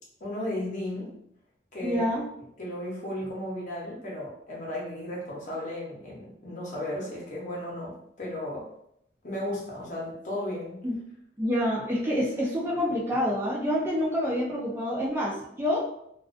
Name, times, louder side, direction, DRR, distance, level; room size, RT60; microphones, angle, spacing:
voice 1, 0.2-1.1 1.7-2.1 2.6-8.7 9.2-10.8, left 1 dB, 45° left, -4 dB, 0.8 m, -35 dB
voice 2, 1.8-2.3 10.8-11.0 11.4-15.8, equal, 10° right, -5 dB, 0.3 m, -27 dB
2.3 x 2.2 x 2.5 m, 0.75 s
head